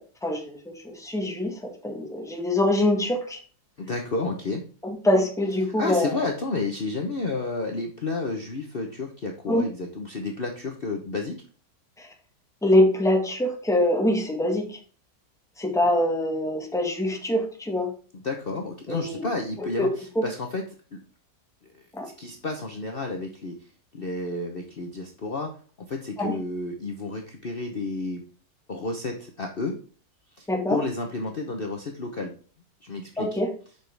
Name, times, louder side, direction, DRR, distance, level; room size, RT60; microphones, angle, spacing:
voice 1, 0.0-3.4 4.8-6.1 9.5-9.7 12.0-12.1 12.6-14.8 15.6-17.9 18.9-19.3 19.8-19.9 20.1-20.2 21.9-22.1 26.2-26.4 30.5-30.8 33.2-33.5, left 1 dB, ahead, 2 dB, 1.4 m, -24 dB
voice 2, 3.8-4.6 5.8-11.4 18.1-20.6 20.9-21.0 21.7-23.6 23.9-25.5 25.8-28.2 28.7-29.8 30.4-32.3 32.8-33.4, left 3 dB, 40° left, 2 dB, 1.0 m, -31 dB
7.9 x 6.2 x 3.4 m, 0.40 s
omnidirectional pair, 1.7 m